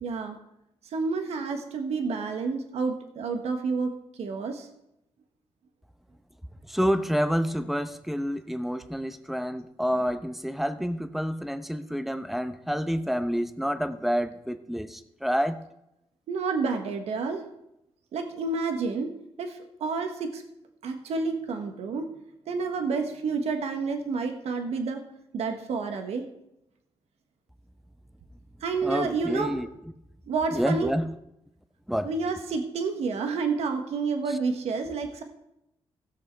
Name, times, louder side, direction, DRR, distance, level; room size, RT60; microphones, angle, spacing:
voice 1, 0.0-0.4 0.9-4.7 16.3-17.4 18.1-19.1 19.4-20.4 20.8-22.1 22.5-25.0 25.3-26.2 28.6-29.5 30.3-30.9 32.0-35.2, right 4 dB, 85° right, 5 dB, 1.3 m, -29 dB
voice 2, 6.7-15.6 28.8-29.7 30.5-31.1 31.9-32.1 34.3-34.4, equal, ahead, 10 dB, 0.8 m, -28 dB
16.0 x 6.3 x 4.6 m, 0.84 s
cardioid pair, 85°, 11 cm